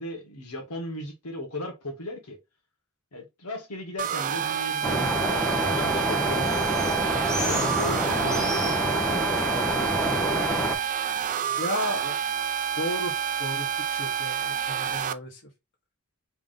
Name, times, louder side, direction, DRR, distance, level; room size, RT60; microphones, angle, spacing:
voice 1, 0.0-2.4 3.1-6.9 7.4-8.7 12.0-12.1, left 1 dB, 80° left, 1.3 m, -37 dB
sound 1, 4.0-15.1, right 8 dB, 35° right, 0.3 m, -29 dB
sound 2, 4.8-10.8, equal, 5° left, 0.6 m, -27 dB
voice 2, 11.6-12.0 12.8-15.4, left 1 dB, 55° left, 1.1 m, -33 dB
3.5 x 2.5 x 3.6 m
head